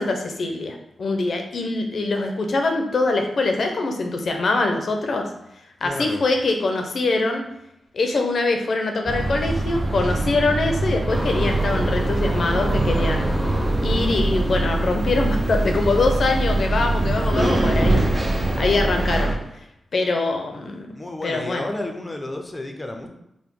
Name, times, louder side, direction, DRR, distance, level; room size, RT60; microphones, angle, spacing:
voice 1, 0.0-5.3 5.8-7.4 7.9-13.3 13.8-18.3 18.6-19.3 19.9-20.9 21.2-21.6, left 3 dB, 60° left, 4 dB, 0.6 m, -23 dB
voice 2, 5.8-6.3 20.9-23.1, left 1 dB, 25° left, 4 dB, 0.6 m, -31 dB
sound 1, 9.1-19.4, right 2 dB, 30° right, 0.7 m, -23 dB
sound 2, 11.1-19.3, right 1 dB, ahead, 0.9 m, -29 dB
4.7 x 2.2 x 3.7 m, 0.82 s
cardioid pair, 65°, 0 cm